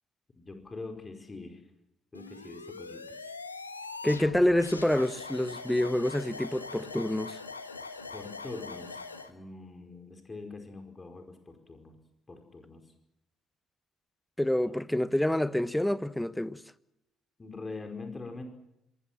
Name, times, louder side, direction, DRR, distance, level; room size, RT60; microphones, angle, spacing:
voice 1, 0.3-1.7 2.1-3.4 8.1-9.0 9.3-12.0 12.3-12.9 14.6-14.8 17.4-18.4, left 3 dB, 25° left, 4.9 m, -43 dB
sound 1, 2.1-9.3, left 4 dB, 90° left, 1.3 m, -42 dB
voice 2, 4.0-7.4 14.4-16.6, left 1 dB, 5° left, 1.2 m, -27 dB
26.5 x 21.5 x 7.6 m
figure-of-eight pair, 50°, 0 cm